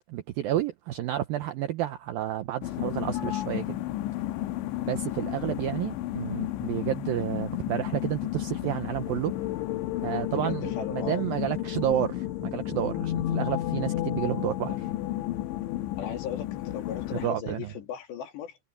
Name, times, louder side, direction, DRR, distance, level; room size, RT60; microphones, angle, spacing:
voice 1, 0.1-3.8 4.9-9.3 10.0-14.9 17.2-17.7, right 12 dB, 85° right, 2.1 m, -30 dB
sound 1, 2.6-17.3, left 14 dB, 85° left, 3.1 m, -32 dB
voice 2, 3.1-3.5 10.4-11.2 16.0-18.6, left 8 dB, 70° left, 4.8 m, -37 dB
omnidirectional pair, 5.3 m